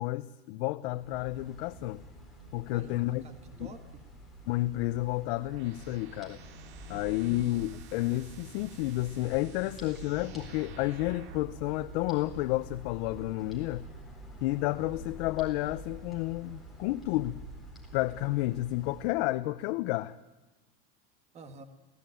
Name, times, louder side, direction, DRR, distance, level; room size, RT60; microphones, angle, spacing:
voice 1, 0.0-2.0 2.5-3.2 3.6-3.7 4.5-6.4 6.9-13.9 14.4-17.4 17.9-20.2, left 17 dB, 65° left, 0.8 m, -31 dB
sound 1, 0.9-19.1, right 1 dB, ahead, 4.1 m, -48 dB
voice 2, 2.7-4.0 6.9-7.4 21.3-21.6, right 4 dB, 20° right, 1.6 m, -50 dB
sound 2, 5.2-11.6, right 8 dB, 85° right, 2.6 m, -53 dB
27.5 x 17.5 x 9.2 m
cardioid pair, 180°, 31 cm